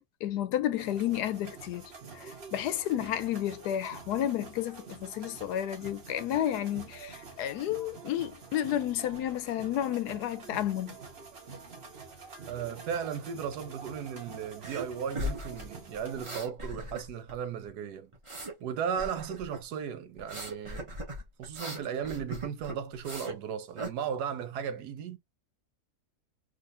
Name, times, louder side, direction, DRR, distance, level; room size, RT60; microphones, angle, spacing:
voice 1, 0.0-11.0, left 11 dB, 75° left, 1.1 m, -32 dB
sound 1, 0.8-16.4, right 5 dB, 40° right, 1.4 m, -47 dB
voice 2, 12.5-18.1 18.6-20.9 21.4-25.2, right 7 dB, 75° right, 1.2 m, -36 dB
sound 2, 14.6-14.9 15.2-17.4 17.6-18.6 19.0-19.6 20.2-23.4 23.8-23.9, equal, 20° right, 1.1 m, -39 dB
3.7 x 2.8 x 2.5 m
omnidirectional pair, 1.8 m